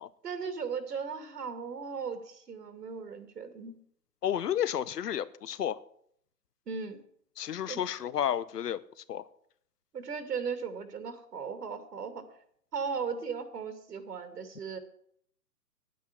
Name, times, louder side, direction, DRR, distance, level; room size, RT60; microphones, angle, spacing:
voice 1, 0.2-3.8 6.7-7.0 7.7-7.8 9.9-12.3 12.7-14.8, right 5 dB, 80° right, 2.6 m, -37 dB
voice 2, 4.2-5.8 7.4-8.8 9.1-9.2, left 10 dB, 75° left, 1.0 m, -31 dB
10.5 x 9.4 x 8.2 m
hypercardioid pair, 145°, 47 cm